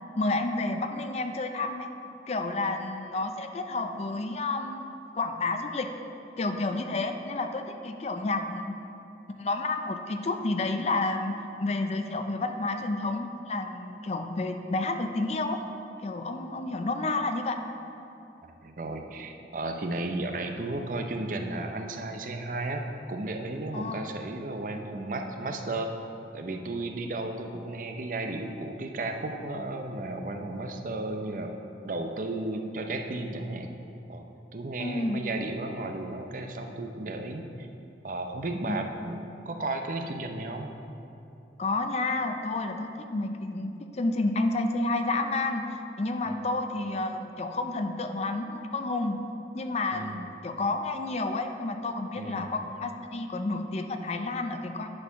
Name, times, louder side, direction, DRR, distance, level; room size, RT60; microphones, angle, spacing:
voice 1, 0.2-1.9 2.3-5.9 6.4-8.7 9.3-15.6 16.0-17.6 23.7-24.1 34.8-35.3 38.7-38.8 41.6-49.3 49.5-54.9, left 2 dB, 35° left, 7 dB, 0.4 m, -30 dB
voice 2, 18.6-25.9 26.3-31.6 31.8-33.7 34.1-34.2 34.5-37.4 38.0-40.7 46.3-46.4 49.9-50.2 52.2-52.5, right 2 dB, 45° right, 5 dB, 0.6 m, -34 dB
9.8 x 4.4 x 5.7 m, 2.7 s
head